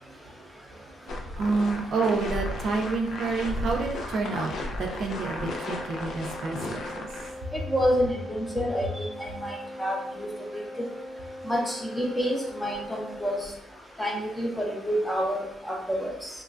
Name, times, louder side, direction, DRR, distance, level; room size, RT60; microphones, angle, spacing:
voice 1, 0.7-7.1, right 4 dB, 65° right, 1 dB, 0.4 m, -29 dB
sound 1, 1.1-7.3, left 2 dB, 65° left, 0.5 m, -34 dB
Wind instrument woodwind instrument, 5.3-13.5, left 1 dB, 30° left, 1.1 m, -41 dB
voice 2, 7.7-10.3 10.8-10.9 11.4-13.5 14.0-16.3, equal, 5° left, -1 dB, 0.7 m, -28 dB
3.0 x 2.2 x 2.4 m, 0.73 s
cardioid pair, 90°, 0 cm